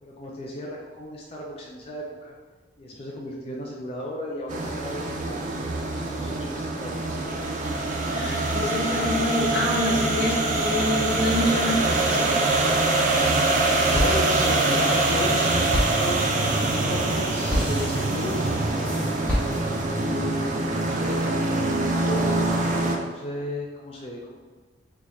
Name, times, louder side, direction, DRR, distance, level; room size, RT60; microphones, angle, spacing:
voice 1, 0.0-2.3 2.8-5.4 5.8-7.0 13.9-16.3 16.6-18.6 19.8-21.4 21.8-22.6 23.1-24.4, left 1 dB, 30° left, -3 dB, 0.4 m, -35 dB
sound 1, 4.5-23.0, right 2 dB, 40° right, 0.4 m, -24 dB
voice 2, 8.1-12.5, left 1 dB, 60° left, -5 dB, 0.9 m, -27 dB
sound 2, 13.1-13.6 13.9-20.0, equal, 5° left, 1.0 m, -31 dB
3.1 x 2.3 x 4.0 m, 1.4 s
head